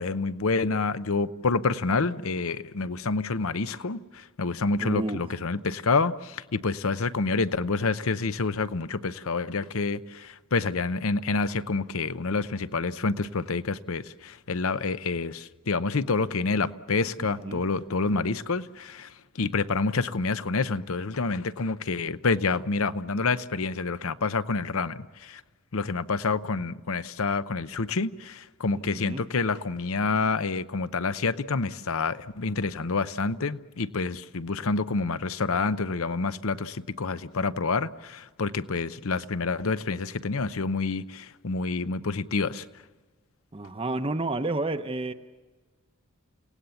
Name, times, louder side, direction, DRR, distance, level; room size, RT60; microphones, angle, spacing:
voice 1, 0.0-25.4 25.7-42.7, left 4 dB, 70° left, 0.8 m, -28 dB
voice 2, 4.8-5.3 17.2-17.6 28.9-29.2 43.5-45.1, right 2 dB, 25° right, 0.7 m, -30 dB
29.5 x 18.0 x 7.1 m
head